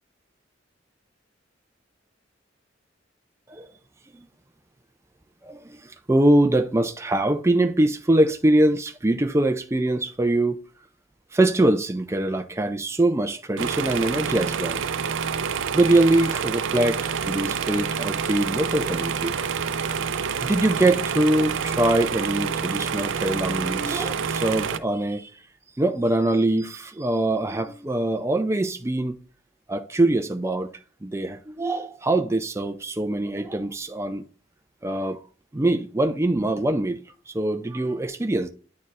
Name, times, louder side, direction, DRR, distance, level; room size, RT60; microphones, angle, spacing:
voice 1, 5.4-10.6 11.3-14.8 15.7-19.3 20.4-25.3 25.8-29.2 29.7-30.7 31.0-34.2 34.8-35.2 35.5-37.0 37.3-38.5, right 1 dB, 15° right, 0.5 m, -23 dB
sound 1, 13.6-24.8, right 6 dB, 80° right, 0.5 m, -27 dB
9.4 x 4.3 x 2.5 m
head